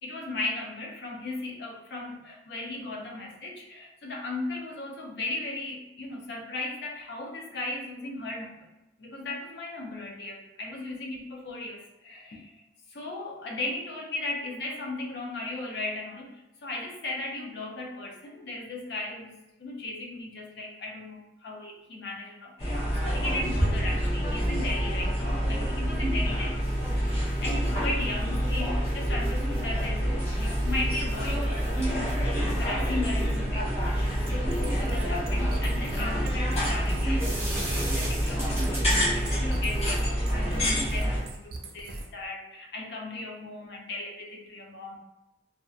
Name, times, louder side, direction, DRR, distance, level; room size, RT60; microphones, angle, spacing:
voice 1, 0.0-8.7 9.0-12.6 12.9-26.9 27.4-31.5 31.9-33.7 34.3-45.0, left 2 dB, 65° left, 0 dB, 0.5 m, -36 dB
sound 1, 22.6-41.2, equal, 35° left, 0.9 m, -27 dB
sound 2, 26.4-41.4, right 1 dB, 15° right, 0.7 m, -43 dB
sound 3, 34.3-42.3, right 2 dB, 55° right, 0.4 m, -41 dB
2.7 x 2.2 x 2.4 m, 0.91 s
head